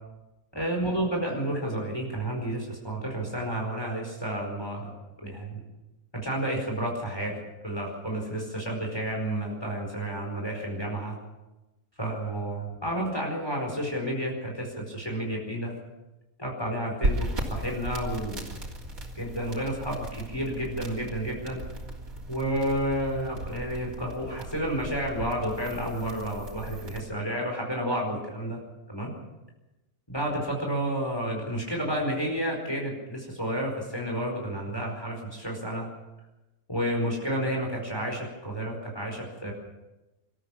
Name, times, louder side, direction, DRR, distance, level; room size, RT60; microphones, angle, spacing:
voice 1, 0.5-4.9 5.2-5.6 6.1-7.4 7.6-11.2 12.0-15.7 16.4-18.5 19.1-21.6 22.3-28.6 28.9-29.1 30.1-35.9 36.7-39.5, right 1 dB, 20° left, 0 dB, 4.7 m, -31 dB
sound 1, 17.0-27.0, right 1 dB, 90° right, 3.9 m, -36 dB
25.5 x 14.0 x 7.2 m, 1.0 s
omnidirectional pair, 1.4 m